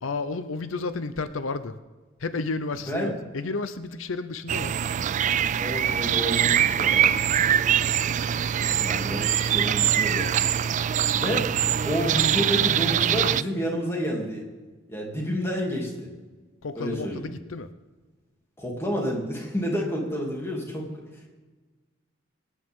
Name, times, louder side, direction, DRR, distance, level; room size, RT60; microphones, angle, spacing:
voice 1, 0.0-1.8 2.2-4.8 16.6-17.7, left 3 dB, 85° left, 11 dB, 0.7 m, -32 dB
sound 1, 4.5-13.4, right 9 dB, 40° right, 0.3 m, -23 dB
voice 2, 5.6-7.1 8.8-10.3 11.1-14.4 14.9-16.1 16.7-17.2 18.6-20.8 21.1-21.3, equal, 15° left, -2 dB, 2.7 m, -29 dB
24.5 x 9.6 x 3.7 m, 1.3 s
head